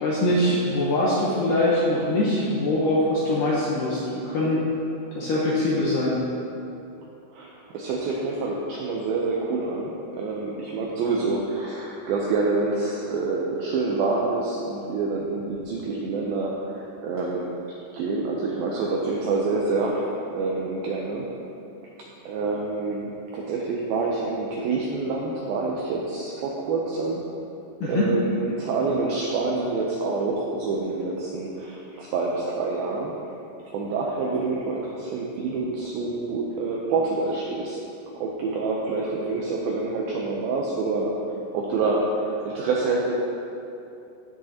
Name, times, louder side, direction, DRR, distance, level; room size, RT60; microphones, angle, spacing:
voice 1, 0.0-4.7 5.1-6.2 27.8-28.1, left 1 dB, 75° left, -6 dB, 2.0 m, -23 dB
voice 2, 7.3-17.5 17.9-21.3 22.3-27.2 27.9-33.1 33.7-37.8 38.2-41.1 41.5-43.1, right 3 dB, 85° right, -2 dB, 2.1 m, -27 dB
15.5 x 6.4 x 2.9 m, 2.8 s
omnidirectional pair, 5.1 m